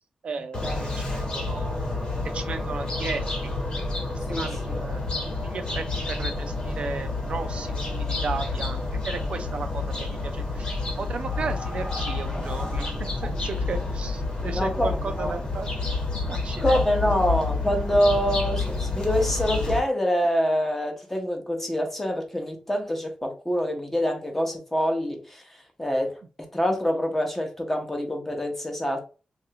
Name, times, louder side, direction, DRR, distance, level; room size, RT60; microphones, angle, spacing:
voice 1, 0.2-1.8 2.3-3.3 4.3-5.0 5.4-6.3 6.6-15.7 16.3-16.8, right 4 dB, 60° right, 0.4 m, -35 dB
sound 1, 0.5-19.8, left 3 dB, 45° left, 1.0 m, -29 dB
voice 2, 4.3-4.8 14.5-15.3 16.6-25.4 25.8-26.1 26.4-29.0, equal, 10° left, 0.7 m, -25 dB
3.2 x 2.4 x 2.8 m
wide cardioid pair, 150°, 2 cm